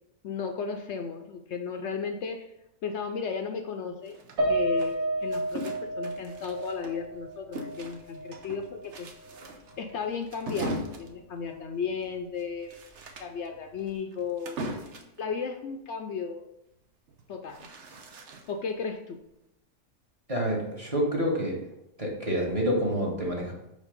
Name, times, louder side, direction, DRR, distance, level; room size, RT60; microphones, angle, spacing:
voice 1, 0.2-2.5 2.8-4.2 4.5-4.9 5.2-9.1 9.8-12.7 13.2-14.6 15.2-16.5 17.3-17.8 18.5-19.2, left 5 dB, 65° left, 6 dB, 0.8 m, -34 dB
sound 1, 4.1-7.2 7.5-15.2 17.1-18.7, right 1 dB, 60° right, 1.1 m, -40 dB
Piano, 4.4-8.9 9.2-9.4 9.8-9.9, right 1 dB, 80° right, 1.7 m, -31 dB
voice 2, 20.3-21.6 22.0-23.5, equal, 25° right, -3 dB, 1.5 m, -28 dB
5.2 x 4.9 x 5.1 m, 0.85 s
omnidirectional pair, 1.4 m